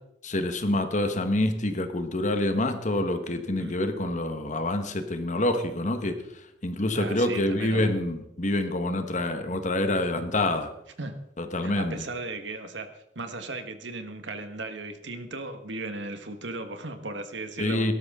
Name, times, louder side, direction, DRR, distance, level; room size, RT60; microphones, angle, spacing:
voice 1, 0.2-6.2 6.6-10.7 11.4-12.1 17.6-17.9, left 1 dB, 40° left, 7 dB, 1.4 m, -27 dB
voice 2, 6.9-7.9 11.0-11.1 11.6-12.9 13.1-17.9, right 2 dB, 80° right, 8 dB, 1.5 m, -36 dB
17.5 x 12.5 x 3.8 m, 0.80 s
head